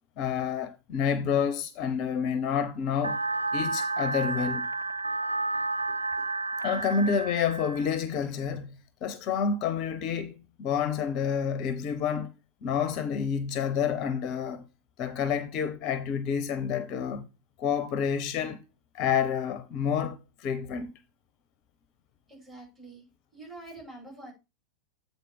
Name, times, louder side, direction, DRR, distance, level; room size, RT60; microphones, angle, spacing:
voice 1, 0.2-3.2 3.5-4.6 6.6-12.3 12.6-14.6 15.0-17.2 17.6-18.6 18.9-20.9, left 7 dB, 40° left, 0.7 m, -29 dB
sound 1, 3.0-8.0, right 3 dB, 80° right, 0.3 m, -31 dB
voice 2, 6.6-7.1 22.3-23.0 23.3-24.3, right 2 dB, 20° right, 5.4 m, -46 dB
8.3 x 4.0 x 5.4 m
figure-of-eight pair, 90°, 0 cm